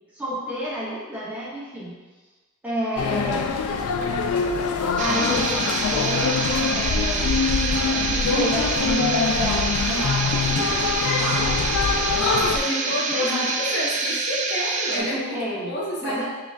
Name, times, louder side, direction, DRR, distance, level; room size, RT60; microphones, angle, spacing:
voice 1, 0.0-2.0 2.6-3.5 5.0-6.4 6.7-7.3 7.9-10.9 11.2-11.8 12.6-13.5 14.9-15.7 16.0-16.2, equal, 5° right, -8 dB, 0.8 m, -30 dB
sound 1, 3.0-12.6, left 5 dB, 75° left, 0.3 m, -24 dB
sound 2, 5.0-15.0, right 4 dB, 35° right, 0.3 m, -26 dB
voice 2, 12.1-15.3 15.6-16.2, left 1 dB, 55° left, -4 dB, 0.8 m, -29 dB
5.6 x 2.5 x 2.4 m, 1.3 s
head